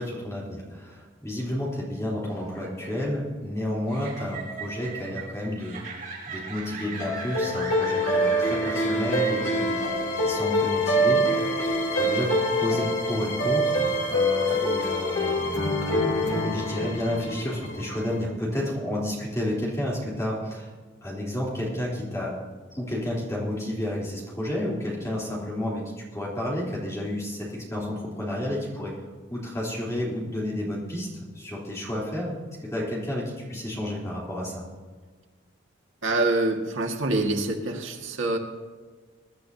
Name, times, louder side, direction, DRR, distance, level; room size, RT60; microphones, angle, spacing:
voice 1, 0.0-5.8 6.3-11.5 11.9-15.8 16.4-20.7 21.0-22.4 22.7-29.0 29.3-34.6, left 1 dB, 15° left, -6 dB, 3.5 m, -31 dB
sound 1, 2.2-9.9, right 4 dB, 45° right, 4.9 m, -39 dB
sound 2, 7.0-18.2, equal, 75° left, 3.2 m, -25 dB
voice 2, 36.0-38.4, right 2 dB, 80° right, 1 dB, 1.9 m, -25 dB
23.0 x 12.0 x 2.8 m, 1.5 s
head